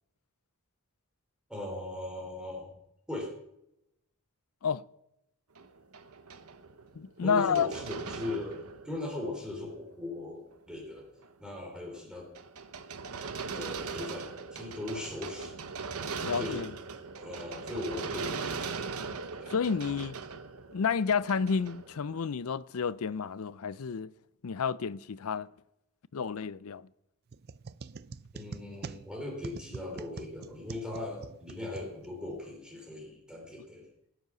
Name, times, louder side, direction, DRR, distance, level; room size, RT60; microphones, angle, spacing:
voice 1, 1.5-2.7 3.1-3.3 7.2-11.1 11.4-12.3 13.5-15.6 16.2-16.6 17.2-18.8 19.4-19.5 28.3-33.9, left 2 dB, 5° right, 3.2 m, -39 dB
sound 1, 5.6-9.3 9.7-9.8 10.5-10.6 11.0-11.3 11.9-22.4, right 4 dB, 75° right, 1.0 m, -40 dB
voice 2, 7.0-7.7 16.2-16.7 19.5-20.2 20.7-24.1 24.4-25.5 26.1-26.9, left 6 dB, 70° left, 0.5 m, -30 dB
sound 2, 27.3-32.4, right 4 dB, 45° right, 0.5 m, -45 dB
19.0 x 8.1 x 6.1 m
head